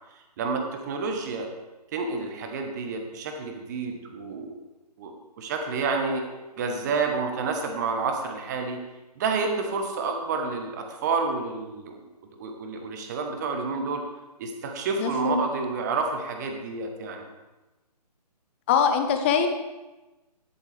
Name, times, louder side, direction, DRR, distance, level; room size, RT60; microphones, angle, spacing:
voice 1, 0.1-1.5 1.9-4.6 5.0-6.2 6.6-8.8 9.2-12.1 12.4-14.0 14.4-17.3, right 4 dB, 25° right, 4 dB, 1.3 m, -29 dB
voice 2, 15.0-15.4 18.7-19.5, left 7 dB, 15° left, 6 dB, 0.7 m, -22 dB
11.5 x 11.0 x 3.4 m, 1.1 s
figure-of-eight pair, 145°, 21 cm